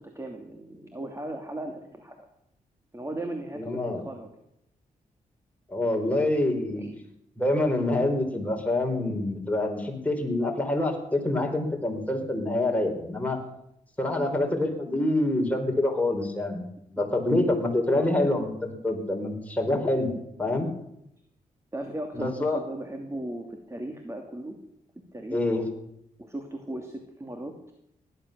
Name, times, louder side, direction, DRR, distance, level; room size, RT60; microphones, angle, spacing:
voice 1, 0.0-2.3 2.9-4.3 5.9-6.3 6.7-6.9 14.2-14.4 17.9-18.2 21.7-24.5 25.1-25.4 26.2-27.5, right 1 dB, 20° right, 4 dB, 2.7 m, -37 dB
voice 2, 3.6-4.0 5.7-6.8 7.4-13.4 14.0-16.7 16.9-20.1 20.4-20.7 22.1-22.6 25.3-25.6, left 1 dB, 10° left, 1 dB, 4.8 m, -26 dB
17.5 x 11.5 x 6.9 m, 0.79 s
cardioid pair, 55°, 15 cm